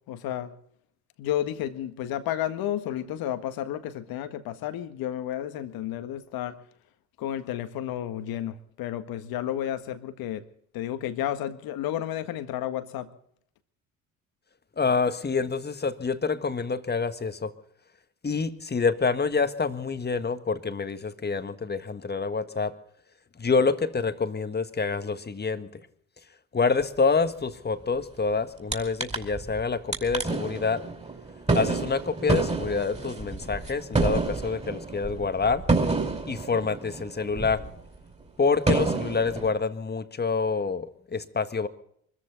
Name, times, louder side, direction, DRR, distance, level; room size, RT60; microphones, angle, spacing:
voice 1, 0.1-0.5 1.2-6.6 7.2-10.4 10.7-13.1, left 11 dB, 70° left, 10 dB, 1.7 m, -32 dB
voice 2, 14.8-17.5 18.2-22.7 23.4-25.8 26.5-30.8 31.5-35.6 36.3-37.6 38.4-41.7, left 4 dB, 25° left, 10 dB, 1.6 m, -27 dB
sound 1, 28.7-28.8 29.0-29.6 29.9-37.8 38.2-38.3 38.7-39.5, right 3 dB, 15° right, 4.8 m, -28 dB
24.5 x 14.0 x 4.0 m, 0.67 s
hypercardioid pair, 60°, 38 cm